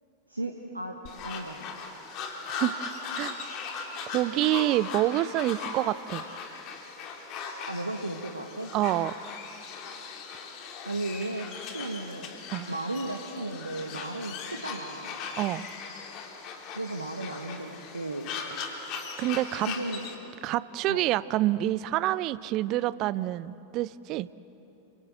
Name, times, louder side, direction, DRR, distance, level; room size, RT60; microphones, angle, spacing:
voice 1, 0.3-1.7 7.7-8.7 10.9-12.3 12.7-15.1 16.7-18.3 19.6-20.0 20.9-21.0, right 2 dB, 85° right, 2 dB, 1.7 m, -35 dB
sound 1, 1.1-20.2, left 5 dB, 40° left, 3.1 m, -39 dB
voice 2, 4.1-6.2 8.7-9.2 12.5-12.7 15.4-15.7 19.2-19.7 20.4-24.3, right 15 dB, 40° right, 18 dB, 0.7 m, -27 dB
29.5 x 25.0 x 8.1 m, 3.0 s
figure-of-eight pair, 90°, 0 cm